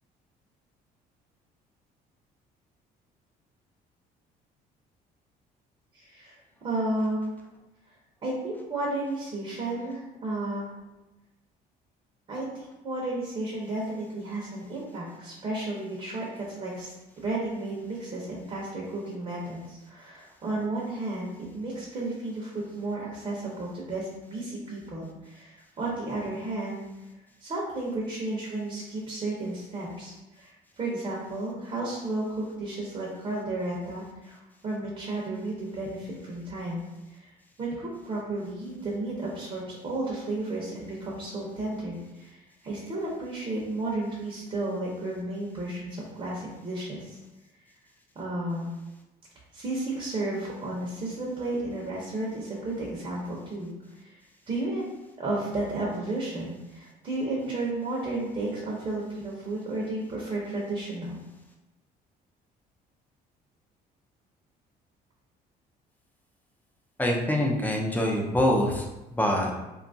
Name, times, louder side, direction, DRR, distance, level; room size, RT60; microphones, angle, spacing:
voice 1, 5.9-6.4 6.6-7.3 8.2-10.7 12.3-26.8 27.4-34.4 34.6-37.3 37.6-47.2 48.2-48.7 49.5-53.7 54.0-54.2 54.5-54.8 55.2-61.2, right 2 dB, 35° right, -4 dB, 0.7 m, -33 dB
voice 2, 67.0-68.9 69.1-69.5, left 1 dB, 10° left, 1 dB, 0.4 m, -24 dB
2.8 x 2.4 x 2.6 m, 1.0 s
cardioid pair, 110°, 17 cm